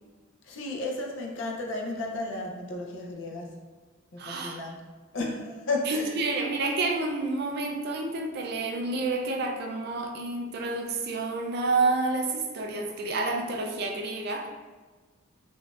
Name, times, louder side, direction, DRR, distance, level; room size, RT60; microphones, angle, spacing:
voice 1, 0.4-3.5 4.1-4.8 5.1-6.1, left 2 dB, 65° left, 0 dB, 0.5 m, -33 dB
voice 2, 4.2-4.6 5.9-14.5, right 3 dB, 50° right, 2 dB, 0.4 m, -29 dB
3.7 x 2.5 x 2.3 m, 1.4 s
head